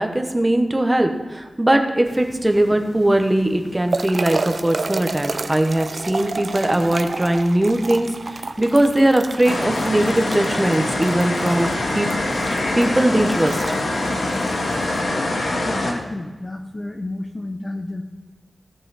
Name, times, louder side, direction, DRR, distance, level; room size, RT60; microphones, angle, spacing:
voice 1, 0.0-12.1 12.3-13.6 14.0-14.2, right 1 dB, 15° right, 5 dB, 0.9 m, -20 dB
sound 1, 2.1-15.0, right 3 dB, 50° right, 0.5 m, -32 dB
sound 2, 9.4-15.9, left 2 dB, 80° left, 1.8 m, -24 dB
voice 2, 15.6-18.0, left 2 dB, 25° left, 3 dB, 0.7 m, -30 dB
16.5 x 5.7 x 4.1 m, 1.2 s
wide cardioid pair, 115°, 0 cm